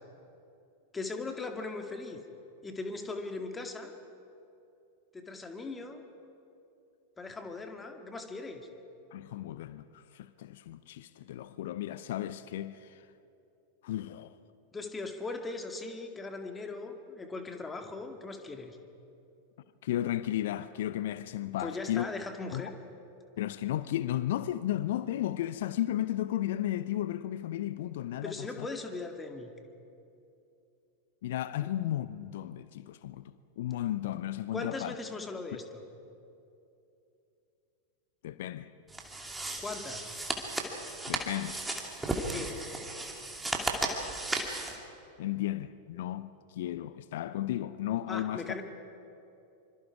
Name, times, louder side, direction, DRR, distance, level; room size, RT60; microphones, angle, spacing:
voice 1, 0.9-2.2 2.6-3.9 5.1-6.0 7.2-8.7 14.7-18.8 21.6-22.7 28.2-29.5 34.5-35.8 39.6-40.1 42.1-42.5 48.1-48.6, left 3 dB, 15° left, 2.1 m, -39 dB
voice 2, 9.1-13.0 13.8-14.4 19.8-22.1 22.5-22.7 23.4-28.7 31.2-34.9 38.2-38.7 41.1-41.6 45.2-48.4, left 13 dB, 55° left, 0.7 m, -34 dB
sound 1, 38.9-44.8, right 2 dB, 5° right, 2.7 m, -35 dB
26.5 x 25.5 x 4.9 m
figure-of-eight pair, 90°, 0 cm